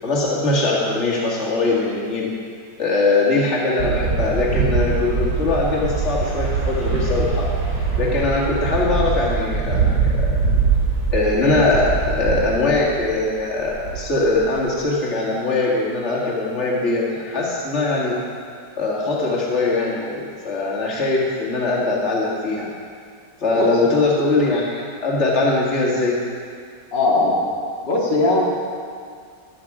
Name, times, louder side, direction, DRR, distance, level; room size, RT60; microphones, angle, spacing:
voice 1, 0.0-2.3 2.8-7.5 8.0-10.3 11.1-18.2 18.8-22.7 23.4-26.2, left 3 dB, 40° left, -4 dB, 2.3 m, -21 dB
sound 1, 3.8-13.2 13.5-14.8, right 4 dB, 90° right, 3.5 m, -22 dB
voice 2, 26.9-27.4 27.8-28.4, left 2 dB, 90° left, -4 dB, 2.7 m, -18 dB
14.5 x 10.5 x 4.9 m, 2.2 s
omnidirectional pair, 1.9 m